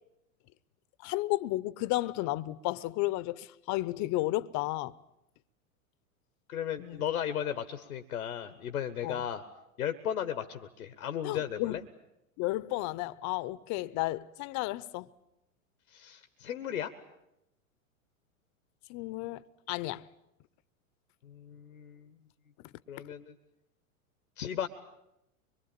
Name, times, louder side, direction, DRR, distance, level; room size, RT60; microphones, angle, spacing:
voice 1, 1.0-4.9 6.8-7.0 9.0-9.2 11.2-11.8 12.4-15.1 18.9-20.0 22.6-22.7, left 18 dB, 40° left, 0.9 m, -33 dB
voice 2, 6.5-9.4 9.8-11.8 15.9-16.9 21.2-22.1 22.9-23.3 24.4-24.7, left 9 dB, 85° left, 1.3 m, -35 dB
24.5 x 23.0 x 8.8 m
hypercardioid pair, 100°, 42 cm